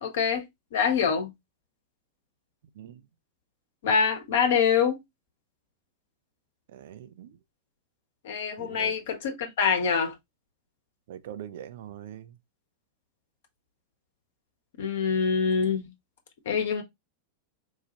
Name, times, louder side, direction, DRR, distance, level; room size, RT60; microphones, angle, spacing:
voice 1, 0.0-0.4 0.7-1.3 3.8-5.0 8.2-10.1 14.8-15.9 16.5-16.8, left 6 dB, 60° left, 1.0 m, -25 dB
voice 2, 6.7-7.4 8.6-9.0 11.1-12.3, right 10 dB, 55° right, 0.5 m, -42 dB
4.7 x 2.4 x 2.9 m
figure-of-eight pair, 90°, 0 cm